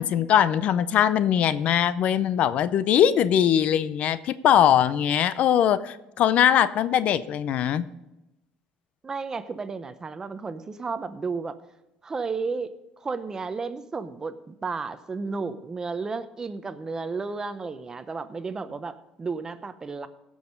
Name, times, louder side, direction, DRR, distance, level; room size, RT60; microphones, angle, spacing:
voice 1, 0.0-7.9, left 9 dB, 60° left, 15 dB, 0.5 m, -21 dB
voice 2, 9.0-11.6 12.0-20.1, right 4 dB, 25° right, 12 dB, 0.7 m, -33 dB
16.0 x 6.3 x 5.2 m, 0.94 s
cardioid pair, 110°, 3 cm